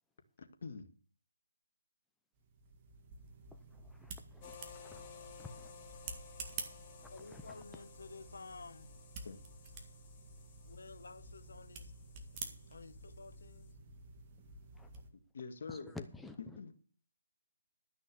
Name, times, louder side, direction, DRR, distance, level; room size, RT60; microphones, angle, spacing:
voice 1, 0.4-0.9 9.2-9.4 15.1-15.9 16.4-16.7, left 4 dB, 55° left, 1.8 m, -46 dB
sound 1, 2.4-15.1, right 4 dB, 25° right, 1.8 m, -50 dB
voice 2, 3.5-5.1 5.4-6.0 7.0-7.8 14.4-14.5 14.7-15.0 15.7-16.4, left 3 dB, 5° left, 0.7 m, -52 dB
sound 2, 4.4-13.7, left 7 dB, 25° left, 1.9 m, -57 dB
voice 3, 7.1-9.0 10.6-11.9 12.7-13.7, left 4 dB, 75° left, 1.3 m, -52 dB
12.5 x 6.2 x 6.8 m
hypercardioid pair, 160°, 0 cm